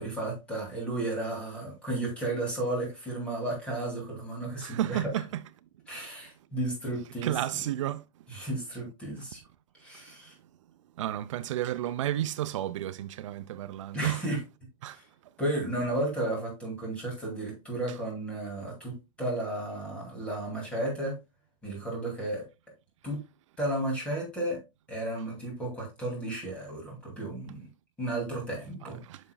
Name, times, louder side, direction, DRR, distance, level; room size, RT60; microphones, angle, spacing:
voice 1, 0.0-5.0 5.9-7.3 8.3-9.4 9.8-10.3 13.9-14.4 14.9-15.0 15.4-21.1 21.6-22.4 23.0-23.2 23.6-24.6 24.9-27.6 28.0-29.0, right 1 dB, 5° left, 2.4 m, -33 dB
voice 2, 4.6-5.4 7.2-8.0 11.0-14.2 14.8-15.0 28.8-29.2, right 12 dB, 70° right, 0.4 m, -32 dB
9.0 x 5.8 x 2.2 m
supercardioid pair, 180°, 17 cm